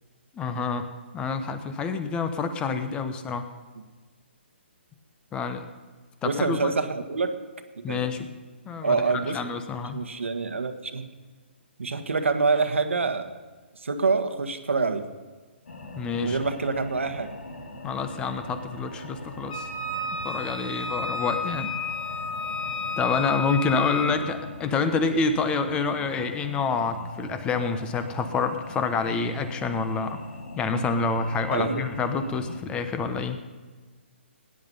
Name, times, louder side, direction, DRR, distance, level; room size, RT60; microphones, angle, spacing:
voice 1, 0.3-3.5 5.3-5.7 6.2-6.7 7.8-8.3 8.6-10.0 15.9-16.4 17.8-19.7 20.2-21.7 23.0-30.2 30.6-33.4, left 4 dB, 15° left, 9 dB, 1.1 m, -27 dB
voice 2, 6.2-7.3 7.9-8.0 8.8-9.4 9.9-11.1 11.8-13.3 13.8-15.0 16.2-17.3 24.0-24.1 31.5-31.8, right 4 dB, 85° right, 8 dB, 1.5 m, -26 dB
sound 1, 15.7-32.6, left 2 dB, 80° left, 2.7 m, -41 dB
Wind instrument woodwind instrument, 19.5-24.2, left 3 dB, 40° left, 3.1 m, -32 dB
18.0 x 10.5 x 5.5 m, 1.4 s
hypercardioid pair, 145°, 7 cm